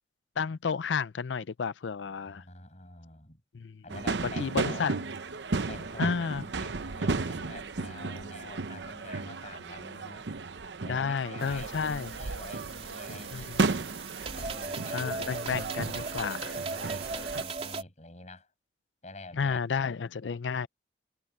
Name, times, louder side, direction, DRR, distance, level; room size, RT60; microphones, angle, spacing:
voice 1, 0.4-2.4 3.5-3.8 4.4-4.9 6.0-6.4 10.9-12.1 13.3-13.7 14.9-16.5 19.3-20.7, left 5 dB, 90° left, 0.5 m, -31 dB
voice 2, 2.2-3.4 3.8-5.2 5.7-10.3 10.8-13.5 14.3-15.5 16.4-18.5 19.0-19.9, left 2 dB, 40° left, 7.3 m, -47 dB
sound 1, 3.9-17.4, right 3 dB, 80° right, 0.8 m, -34 dB
sound 2, 11.4-17.8, right 4 dB, 35° right, 3.1 m, -38 dB
head